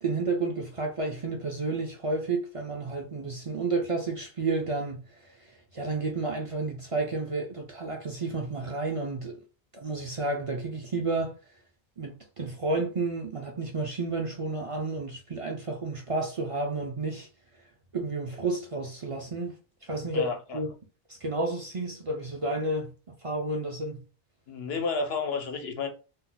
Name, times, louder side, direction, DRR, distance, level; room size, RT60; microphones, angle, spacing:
voice 1, 0.0-5.0 5.7-9.4 9.7-11.3 12.0-17.3 17.9-19.5 19.8-20.3 20.5-20.7 21.1-22.9 23.2-24.0, right 3 dB, 40° right, 0.5 m, -31 dB
voice 2, 20.1-20.6 24.5-25.9, left 4 dB, 80° left, 0.9 m, -31 dB
2.6 x 2.2 x 3.8 m
omnidirectional pair, 1.0 m